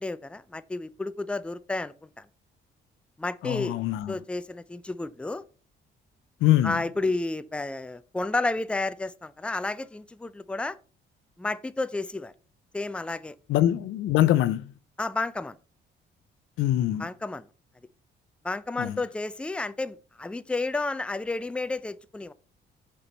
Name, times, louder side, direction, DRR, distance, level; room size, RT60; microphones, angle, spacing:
voice 1, 0.0-2.2 3.2-3.8 4.1-5.4 6.6-10.8 11.4-12.3 12.7-13.4 15.0-15.6 17.0-17.5 18.4-22.3, left 2 dB, 5° left, 0.4 m, -31 dB
voice 2, 3.4-4.2 6.4-6.8 13.5-14.7 16.6-17.1 18.8-19.0, left 13 dB, 90° left, 0.5 m, -23 dB
6.8 x 4.4 x 5.2 m
cardioid pair, 90°, 20 cm